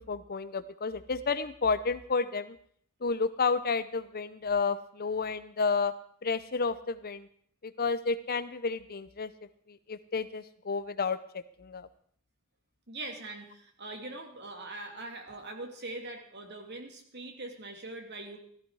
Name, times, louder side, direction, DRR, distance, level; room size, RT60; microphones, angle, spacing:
voice 1, 0.1-2.6 3.0-5.9 6.2-7.3 7.6-9.3 9.7-11.2 11.6-11.9, left 4 dB, 45° left, 13 dB, 0.7 m, -31 dB
voice 2, 12.9-18.4, right 2 dB, 50° right, 4 dB, 2.8 m, -42 dB
16.5 x 13.5 x 4.8 m, 0.62 s
head